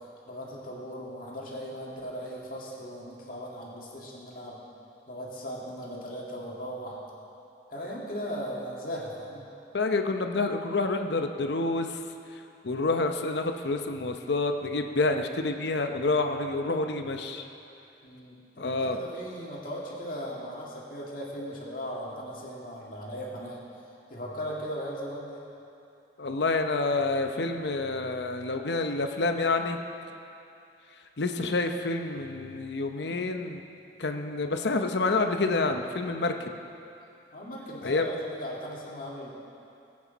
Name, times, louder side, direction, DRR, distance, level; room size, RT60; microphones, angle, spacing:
voice 1, 0.3-4.6 5.1-7.0 7.7-9.5 18.0-23.6 24.1-25.4 36.3-36.5 37.3-39.3, equal, 50° left, -4 dB, 2.3 m, -38 dB
voice 2, 9.7-12.0 12.6-17.5 18.6-19.0 26.2-29.8 31.2-33.6 34.0-36.3 37.8-38.1, left 3 dB, 70° left, 6 dB, 0.7 m, -28 dB
19.5 x 8.6 x 4.1 m, 2.7 s
head